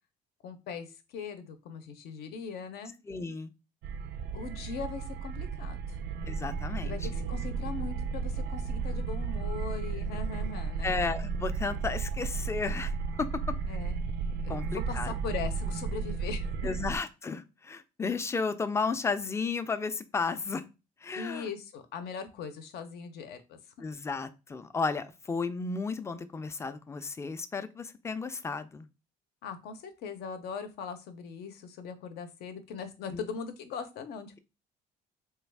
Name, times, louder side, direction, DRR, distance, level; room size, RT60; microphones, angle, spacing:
voice 1, 0.4-0.9 1.1-2.9 4.3-6.0 6.8-11.0 13.7-14.0 14.4-16.7 21.2-23.6 29.4-34.4, left 5 dB, 70° left, 9 dB, 0.6 m, -40 dB
voice 2, 3.1-3.5 6.3-6.9 10.8-12.9 13.2-13.5 14.5-15.1 16.6-20.6 21.0-21.5 23.8-28.9 33.1-33.2, left 4 dB, 15° left, 11 dB, 0.3 m, -33 dB
sound 1, 3.8-17.0, right 5 dB, 75° right, 0.4 m, -34 dB
3.4 x 2.3 x 3.3 m, 0.28 s
cardioid pair, 110°, 17 cm